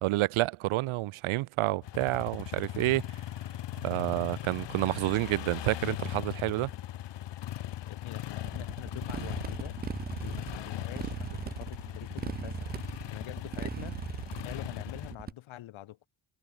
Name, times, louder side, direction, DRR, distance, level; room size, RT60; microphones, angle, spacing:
voice 1, 0.0-3.0 3.8-6.7, right 18 dB, 85° right, 1.1 m, -29 dB
sound 1, 1.8-15.1, left 13 dB, 60° left, 3.3 m, -39 dB
voice 2, 7.8-9.8 10.2-14.0 14.4-16.0, left 14 dB, 75° left, 7.9 m, -45 dB
Motorcycle, 8.4-15.3, right 7 dB, 25° right, 0.3 m, -39 dB
cardioid pair, 175°, 48 cm